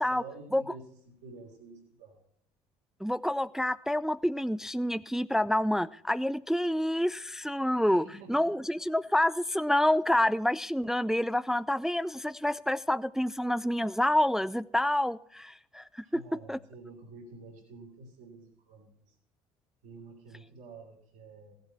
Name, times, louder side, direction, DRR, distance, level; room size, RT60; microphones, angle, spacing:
voice 1, 0.0-2.2 7.9-8.5 16.0-19.2 19.8-21.5, right 3 dB, 70° right, -5 dB, 3.5 m, -49 dB
voice 2, 3.0-16.2 16.5-16.6, left 1 dB, 5° right, 16 dB, 0.4 m, -28 dB
16.0 x 8.0 x 4.3 m, 0.69 s
hypercardioid pair, 55°, 17 cm